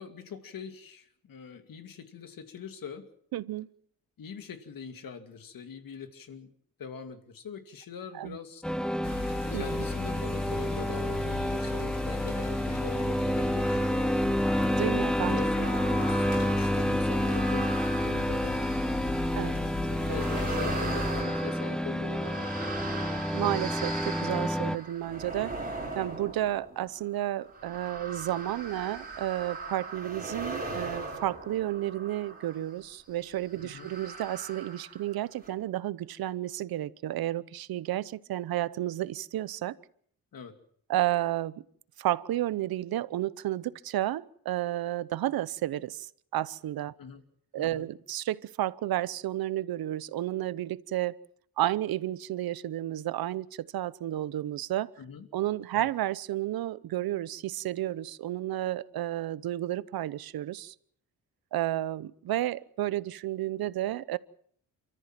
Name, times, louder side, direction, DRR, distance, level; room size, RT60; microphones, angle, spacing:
voice 1, 0.0-3.1 4.2-6.5 6.8-8.6 9.5-14.4 15.3-18.6 19.4-23.3 33.6-33.9 40.3-40.5 47.0-47.2 47.6-47.9 55.0-55.3 55.8-55.9, left 6 dB, 70° left, 2.6 m, -43 dB
voice 2, 3.3-3.7 8.1-8.4 9.5-9.6 14.8-15.4 19.3-19.6 23.3-25.5 25.9-39.8 40.9-41.6 42.0-46.9 47.5-51.2 51.6-54.9 55.3-60.7 61.5-64.2, right 14 dB, 90° right, 0.8 m, -32 dB
sound 1, 8.6-24.8, equal, ahead, 0.8 m, -29 dB
sound 2, 9.0-21.2, left 4 dB, 50° left, 7.7 m, -37 dB
sound 3, 15.6-19.3 19.9-32.7 33.5-35.1 35.4-35.5, right 3 dB, 25° right, 6.0 m, -39 dB
28.5 x 14.0 x 7.5 m
cardioid pair, 100°, 35 cm